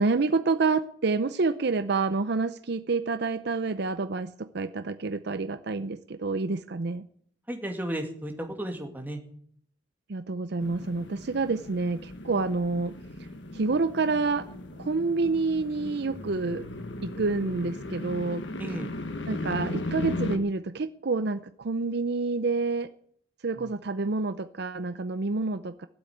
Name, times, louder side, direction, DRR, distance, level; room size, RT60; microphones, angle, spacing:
voice 1, 0.0-7.1 10.1-13.0 13.5-14.5 14.8-16.7 17.0-18.4 19.3-22.9 23.4-25.9, right 3 dB, 65° right, 12 dB, 0.7 m, -28 dB
voice 2, 7.5-9.2 18.6-18.9 23.6-23.7, right 1 dB, 10° right, 3 dB, 2.4 m, -34 dB
sound 1, 10.6-20.4, left 2 dB, 75° left, 1.5 m, -37 dB
16.5 x 8.1 x 9.6 m, 0.62 s
head